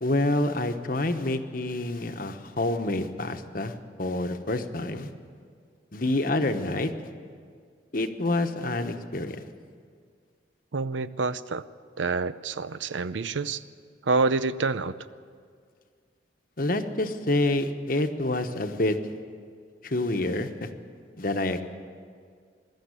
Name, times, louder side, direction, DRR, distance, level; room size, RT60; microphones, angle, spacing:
voice 1, 0.0-5.1 5.9-6.9 7.9-9.4 16.6-19.0 19.8-20.7 21.2-21.6, left 2 dB, 45° left, 7 dB, 1.1 m, -27 dB
voice 2, 10.7-11.6 12.0-13.6 14.0-14.9, right 3 dB, 80° right, 15 dB, 0.6 m, -27 dB
21.5 x 13.0 x 9.8 m, 2.1 s
head